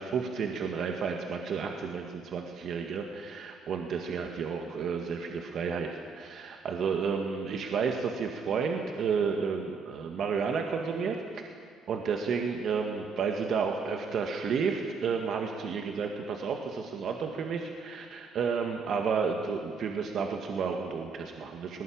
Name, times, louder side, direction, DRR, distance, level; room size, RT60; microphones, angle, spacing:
voice 1, 0.0-5.9 6.1-11.2 11.9-21.8, right 5 dB, 60° right, 3 dB, 1.9 m, -31 dB
19.0 x 18.5 x 8.8 m, 2.1 s
cardioid pair, 90°, 0 cm